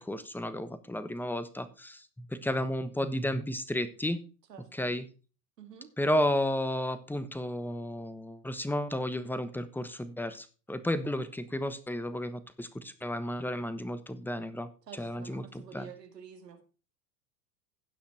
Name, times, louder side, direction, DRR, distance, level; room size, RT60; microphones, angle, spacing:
voice 1, 0.0-4.2 4.7-5.0 6.0-14.7 15.0-15.9, left 1 dB, 5° left, 12 dB, 1.2 m, -33 dB
voice 2, 4.5-4.9 5.6-5.9 14.9-16.6, right 7 dB, 90° right, 6 dB, 2.3 m, -49 dB
16.5 x 5.8 x 4.4 m, 0.35 s
hypercardioid pair, 95°, 47 cm